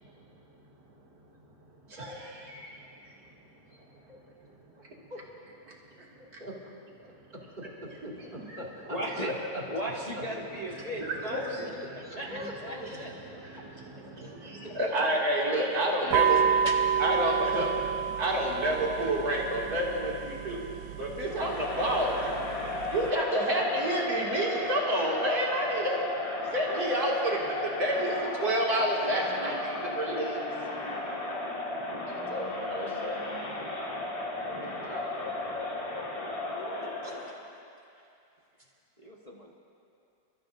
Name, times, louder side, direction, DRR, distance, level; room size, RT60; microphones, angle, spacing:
voice 1, 1.9-3.0 4.4-4.5 5.7-6.4 8.5-8.6 10.9-16.4 17.0-17.7 18.2-20.6 21.0-22.2 22.9-26.0 26.5-30.4 32.3-33.3 33.6-33.8 34.4-34.6 34.9-35.4, right 1 dB, 60° right, -4 dB, 2.9 m, -30 dB
voice 2, 5.6-9.9 11.1-11.3 11.6-13.1 13.5-13.6 14.0-14.5 15.4-15.8 37.0-37.3, equal, 25° right, -4 dB, 2.3 m, -44 dB
voice 3, 8.9-9.4 9.7-11.4 12.2-13.4 14.6-14.9 15.9-16.2 16.6-16.8 17.4-17.5 39.0-39.5, equal, 25° left, -3 dB, 1.1 m, -37 dB
sound 1, 16.1-23.1, right 8 dB, 75° right, 1.1 m, -30 dB
Crowd, 21.3-37.4, left 2 dB, 55° left, 2.3 m, -35 dB
29.5 x 13.5 x 2.6 m, 2.6 s
omnidirectional pair, 1.9 m